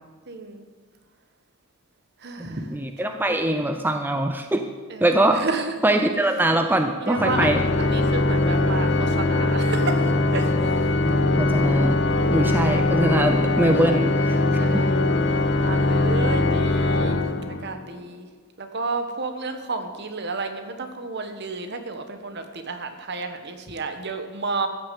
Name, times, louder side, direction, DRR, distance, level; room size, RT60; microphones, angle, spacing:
voice 1, 0.3-0.6 2.2-2.7 3.1-3.6 4.9-5.7 7.0-10.7 12.1-12.5 14.6-15.0 15.6-17.2 17.6-18.3 18.6-24.7, right 3 dB, 55° right, 7 dB, 1.3 m, -32 dB
voice 2, 2.4-4.6 5.0-5.4 5.8-7.6 11.0-12.0 12.3-14.4 14.7-14.9, right 1 dB, 10° right, 6 dB, 0.6 m, -23 dB
Organ, 7.1-17.9, left 2 dB, 55° left, 0.8 m, -21 dB
14.0 x 6.6 x 8.3 m, 1.5 s
head